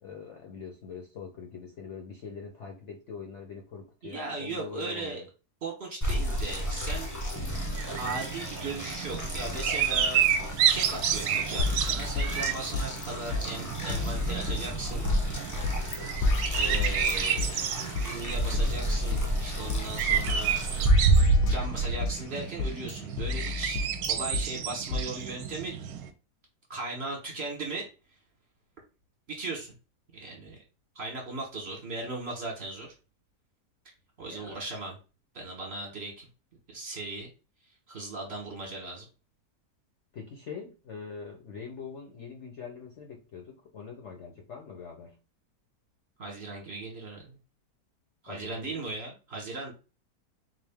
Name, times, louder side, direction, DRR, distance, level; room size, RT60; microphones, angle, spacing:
voice 1, 0.0-5.2 34.2-34.6 40.1-45.2 48.3-48.8, left 5 dB, 55° left, 2 dB, 0.8 m, -43 dB
voice 2, 4.0-5.2 5.6-7.1 8.0-10.2 10.7-15.1 16.5-20.8 21.5-25.8 26.7-27.9 29.3-29.7 30.1-30.6 30.9-32.9 34.2-35.0 35.3-36.3 36.7-37.3 37.9-39.0 46.2-47.3 48.2-49.7, right 2 dB, 40° right, -1 dB, 1.2 m, -37 dB
sound 1, 6.0-20.9, equal, 25° left, 0.4 m, -33 dB
sound 2, 7.5-26.1, right 6 dB, 75° right, 1.1 m, -29 dB
sound 3, 11.6-13.1 13.3-13.4 13.9-15.2 15.6-16.0 16.2-18.1 18.5-20.0 20.3-20.4 20.8-22.2 22.6-24.4 24.9-25.0, left 4 dB, 80° left, 1.2 m, -31 dB
4.0 x 2.5 x 3.5 m, 0.32 s
omnidirectional pair, 1.8 m